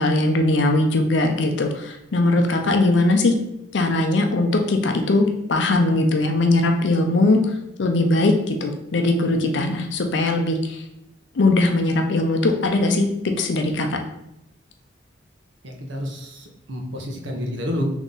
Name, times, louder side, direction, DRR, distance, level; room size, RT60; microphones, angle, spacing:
voice 1, 0.0-3.3 3.7-10.8 11.3-14.0, left 2 dB, 70° left, 4 dB, 0.5 m, -20 dB
voice 2, 15.6-17.9, equal, 80° right, 1 dB, 0.8 m, -29 dB
3.8 x 3.0 x 3.8 m, 0.83 s
head